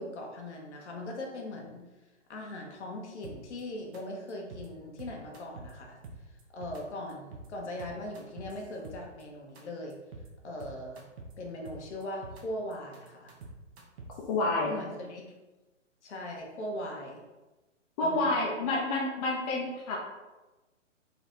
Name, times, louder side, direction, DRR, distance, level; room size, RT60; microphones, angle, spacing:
voice 1, 0.0-1.8 2.3-6.0 6.3-10.0 10.4-11.0 11.4-13.3 14.7-15.2 16.0-17.2 18.0-18.3, left 1 dB, 65° left, 0 dB, 1.1 m, -40 dB
sound 1, 3.2-3.6 3.9-4.0 4.3-4.7 5.0-5.7 6.0-6.8 7.1-7.5 7.8-9.2 9.5-9.6 9.9-10.3 10.6-11.3 11.6-12.4 12.7-14.3, right 3 dB, 55° right, 0.9 m, -46 dB
voice 2, 14.3-14.7 18.0-20.0, left 2 dB, 30° left, -3 dB, 0.7 m, -28 dB
4.0 x 2.4 x 4.4 m, 1.1 s
hypercardioid pair, 130°, 37 cm